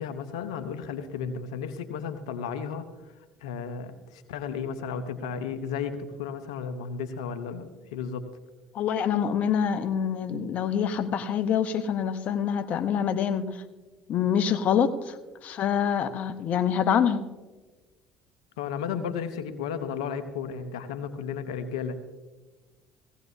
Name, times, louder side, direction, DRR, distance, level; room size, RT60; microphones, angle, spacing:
voice 1, 0.0-2.8 3.4-8.2 18.6-22.0, left 6 dB, 90° left, 9 dB, 0.9 m, -34 dB
voice 2, 8.7-13.5 14.1-15.1 15.4-17.2, left 8 dB, 55° left, 9 dB, 1.0 m, -26 dB
18.5 x 16.0 x 2.7 m, 1.2 s
hypercardioid pair, 70°, 3 cm